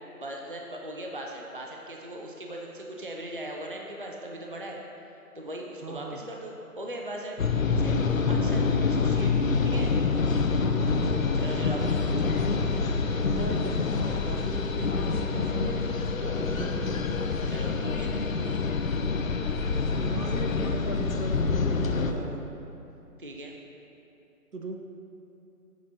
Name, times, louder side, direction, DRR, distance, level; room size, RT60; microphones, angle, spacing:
voice 1, 0.2-4.8 5.3-7.4 7.7-8.0 8.3-8.6 8.9-9.4 9.6-9.9 11.3-12.3 17.5-18.2 23.2-23.6, right 1 dB, 35° right, 0 dB, 0.5 m, -39 dB
voice 2, 5.8-6.3 8.3-8.9 10.9-11.4 12.1-12.4 12.7-12.9 13.3-15.8 16.1-17.1 19.1-19.3 19.5-19.7 20.0-22.5 24.5-24.8, right 2 dB, 90° right, 3 dB, 1.1 m, -38 dB
sound 1, 7.4-22.1, left 4 dB, 60° left, 0.6 m, -26 dB
8.2 x 6.5 x 4.2 m, 2.9 s
figure-of-eight pair, 165°, 45 cm